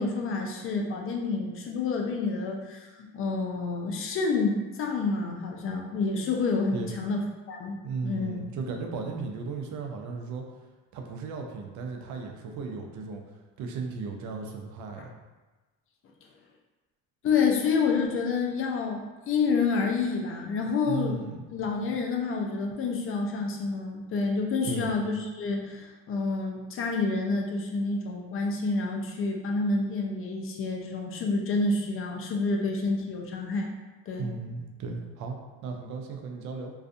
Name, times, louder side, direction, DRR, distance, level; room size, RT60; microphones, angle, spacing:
voice 1, 0.0-7.2 7.5-8.4 15.0-15.1 17.2-21.2 21.5-33.7 34.1-34.3, left 4 dB, 40° left, 1 dB, 0.5 m, -28 dB
voice 2, 7.8-10.4 10.9-13.2 13.6-15.1 20.9-21.4 24.6-25.0 34.2-35.4 35.6-36.7, right 4 dB, 60° right, 2 dB, 0.5 m, -35 dB
2.5 x 2.4 x 2.5 m, 1.2 s
cardioid pair, 105°, 33 cm